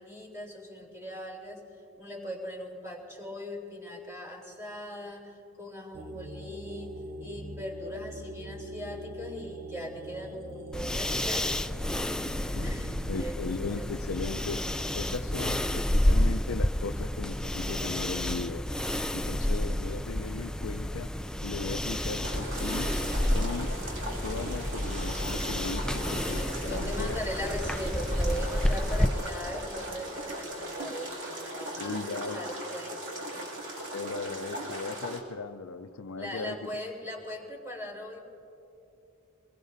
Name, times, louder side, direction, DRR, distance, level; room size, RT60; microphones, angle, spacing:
voice 1, 0.0-1.7 2.0-11.5 12.2-12.3 12.6-13.9 26.3-33.0 33.3-33.5 36.2-38.2, equal, 15° right, -3 dB, 3.6 m, -40 dB
sound 1, 5.9-13.2, right 1 dB, 45° right, 1.0 m, -43 dB
sound 2, 10.7-29.1, left 1 dB, 5° left, 0.3 m, -30 dB
voice 2, 13.1-14.6 14.9-18.6 19.1-21.1 21.4-22.9 23.3-23.7 24.2-27.2 31.8-32.5 33.9-36.7, left 4 dB, 75° left, 9 dB, 0.5 m, -37 dB
sound 3, 22.2-35.2, right 1 dB, 65° right, 2.5 m, -38 dB
24.5 x 21.0 x 2.7 m, 2.9 s
head